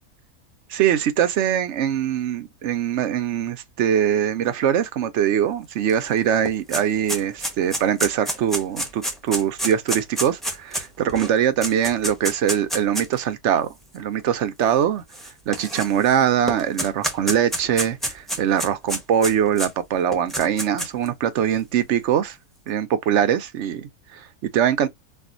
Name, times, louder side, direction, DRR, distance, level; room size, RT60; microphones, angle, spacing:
voice 1, 0.7-13.7 13.9-15.0 15.5-22.4 22.7-24.9, right 9 dB, 65° right, 0.7 m, -22 dB
sound 1, 5.9-6.0 6.2-13.2 13.9-14.0 15.1-16.1 16.5-19.7 20.1-21.1, equal, ahead, 0.7 m, -28 dB
4.3 x 2.4 x 2.4 m
omnidirectional pair, 1.6 m